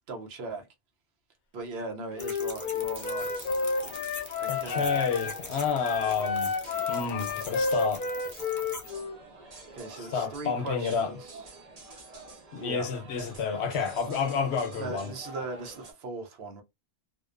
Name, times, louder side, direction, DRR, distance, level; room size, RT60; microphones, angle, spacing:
voice 1, 0.1-0.7 1.5-3.3 4.4-4.9 9.7-11.4 12.6-12.9 14.8-16.6, right 3 dB, 75° right, 0.9 m, -38 dB
Wind instrument woodwind instrument, 2.1-5.4 5.8-9.2, left 4 dB, 60° left, 0.7 m, -31 dB
sound 1, 2.2-8.9, left 3 dB, 25° left, 0.4 m, -43 dB
sound 2, 2.9-15.9, right 3 dB, 40° right, 0.8 m, -47 dB
voice 2, 4.5-6.6 6.9-8.0 10.1-11.1 12.5-15.1, left 6 dB, 90° left, 0.9 m, -29 dB
2.6 x 2.1 x 2.4 m
omnidirectional pair, 1.1 m